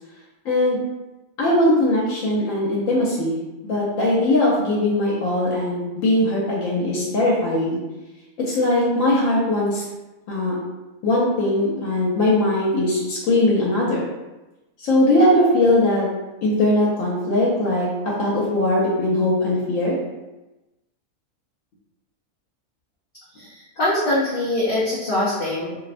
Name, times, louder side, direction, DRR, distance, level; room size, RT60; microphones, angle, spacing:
voice 1, 0.4-0.8 1.4-3.4 3.6-7.8 8.4-9.8 10.3-10.6 11.0-14.1 14.8-16.1 16.4-19.9, left 1 dB, 80° left, -5 dB, 1.0 m, -20 dB
voice 2, 23.3-25.8, left 1 dB, 60° left, -7 dB, 0.6 m, -23 dB
2.6 x 2.0 x 2.4 m, 1.0 s
omnidirectional pair, 1.4 m